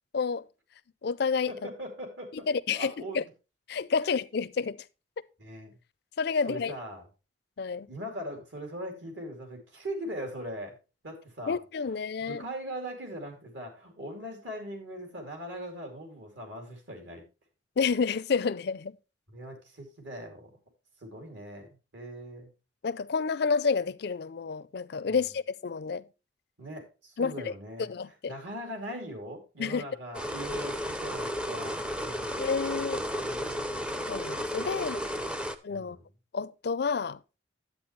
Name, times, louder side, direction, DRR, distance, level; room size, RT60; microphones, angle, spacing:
voice 1, 0.1-0.5 1.0-1.5 2.5-3.2 3.7-4.8 6.2-6.7 7.6-7.9 11.5-12.4 17.8-19.0 22.8-26.0 27.2-27.5 27.8-28.3 29.6-29.8 32.4-33.0 34.1-35.0 35.6-36.0 36.3-37.2, left 5 dB, 55° left, 0.4 m, -29 dB
voice 2, 1.5-2.5 2.7-3.2 5.4-5.8 6.5-7.1 7.9-10.8 11.0-11.6 12.2-17.2 19.3-20.5 21.0-22.5 25.1-25.2 26.6-32.4 33.1-33.9 35.4-36.0, equal, 70° right, 2.7 m, -41 dB
sound 1, 30.1-35.6, equal, 5° right, 0.4 m, -33 dB
10.5 x 8.5 x 3.1 m
head